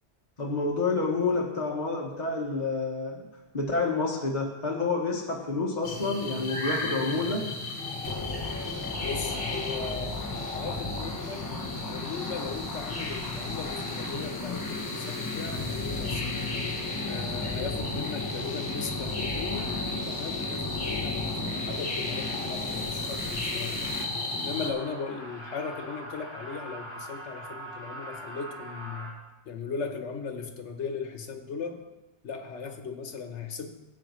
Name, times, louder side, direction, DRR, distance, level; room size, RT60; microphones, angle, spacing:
voice 1, 0.4-3.2 3.5-7.5, left 3 dB, 40° left, -2 dB, 1.3 m, -28 dB
sound 1, 5.8-24.7, left 2 dB, 55° left, 1.4 m, -35 dB
sound 2, 8.0-24.0, left 2 dB, 20° left, 0.7 m, -36 dB
voice 2, 9.0-10.2 10.5-11.5 11.9-16.3 17.0-23.8 24.3-29.1 29.4-31.8 32.2-33.7, left 5 dB, 80° left, 6 dB, 1.3 m, -37 dB
sound 3, 23.8-29.1, right 1 dB, 25° right, 2.6 m, -42 dB
16.0 x 8.5 x 3.1 m, 1.0 s
omnidirectional pair, 1.2 m